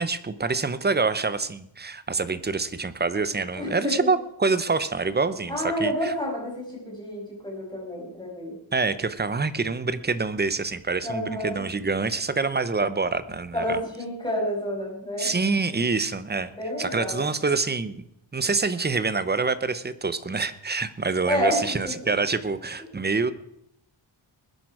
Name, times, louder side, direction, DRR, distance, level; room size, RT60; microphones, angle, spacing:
voice 1, 0.0-6.1 8.7-13.6 15.2-16.5 16.8-18.0 18.3-23.3, right 4 dB, 20° right, 13 dB, 0.7 m, -26 dB
voice 2, 3.6-3.9 5.5-8.5 11.0-11.6 13.5-15.3 16.5-17.2 21.2-21.9, equal, 10° left, -2 dB, 5.8 m, -29 dB
20.5 x 10.5 x 4.8 m, 0.75 s
wide cardioid pair, 170°, 49 cm